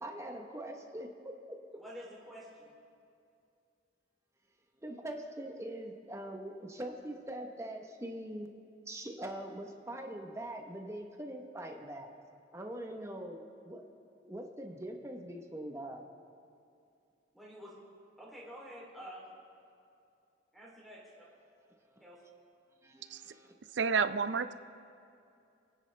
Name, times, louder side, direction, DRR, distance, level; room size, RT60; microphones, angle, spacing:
voice 1, 0.0-1.6 4.8-8.5 8.9-12.1 12.5-13.8 14.2-16.0 22.8-23.5, right 1 dB, 15° right, 3 dB, 1.0 m, -43 dB
voice 2, 1.7-2.7 17.3-17.7 18.2-19.3 20.5-21.2 22.0-22.2, equal, ahead, -4 dB, 3.1 m, -49 dB
voice 3, 23.8-24.5, right 5 dB, 70° right, 12 dB, 0.5 m, -29 dB
28.5 x 9.8 x 3.4 m, 2.5 s
head